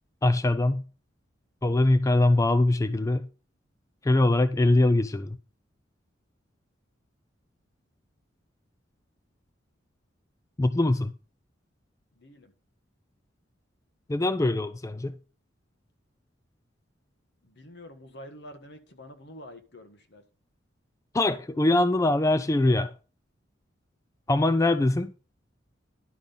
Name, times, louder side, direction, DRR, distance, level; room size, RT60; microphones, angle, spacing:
voice 1, 0.2-0.8 1.6-3.3 4.0-5.4 10.6-11.1 14.1-15.2 21.1-22.9 24.3-25.1, left 2 dB, 15° left, 0.4 m, -22 dB
voice 2, 12.1-12.5 17.4-20.2, left 1 dB, 60° left, 1.5 m, -47 dB
11.0 x 5.3 x 5.7 m
head